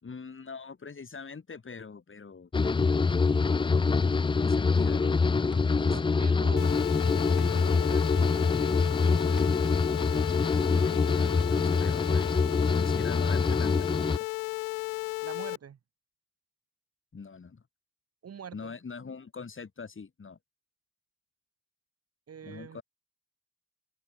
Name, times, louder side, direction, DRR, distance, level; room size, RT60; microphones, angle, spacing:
voice 1, 0.0-3.0 4.0-6.0 10.1-10.3 10.6-12.3 12.8-14.3 17.1-17.6 18.5-20.4 22.4-22.8, left 5 dB, 35° left, 6.2 m, -43 dB
sound 1, 2.5-14.2, left 4 dB, 15° left, 0.5 m, -25 dB
sound 2, 5.5-13.0, equal, ahead, 5.0 m, -53 dB
voice 2, 5.7-6.7 7.3-8.4 15.2-15.8 18.2-18.7 22.3-22.8, right 7 dB, 45° right, 1.7 m, -45 dB
sound 3, 6.6-15.6, left 40 dB or more, 85° left, 0.5 m, -34 dB
open air
hypercardioid pair, 55°, 34 cm